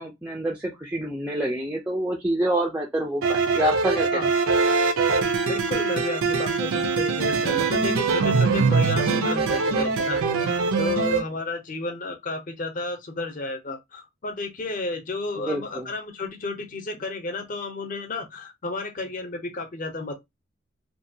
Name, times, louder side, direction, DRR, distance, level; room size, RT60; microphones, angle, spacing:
voice 1, 0.0-4.6 15.4-15.9, right 1 dB, 5° right, 0.3 m, -27 dB
sound 1, 3.2-11.2, right 4 dB, 90° right, 0.5 m, -23 dB
voice 2, 5.5-20.1, left 2 dB, 40° left, 0.6 m, -32 dB
2.6 x 2.2 x 2.6 m
head